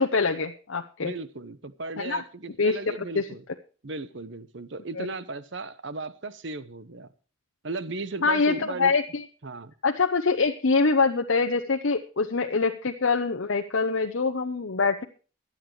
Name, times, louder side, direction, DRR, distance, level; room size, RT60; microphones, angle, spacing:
voice 1, 0.0-1.1 2.0-2.2 2.6-2.7 3.1-3.3 5.0-5.1 8.2-9.2 9.8-15.0, left 4 dB, 70° left, 0.8 m, -24 dB
voice 2, 1.0-3.4 3.8-7.1 7.6-8.9 9.4-9.7, right 3 dB, 60° right, 0.9 m, -36 dB
23.0 x 8.7 x 3.2 m
head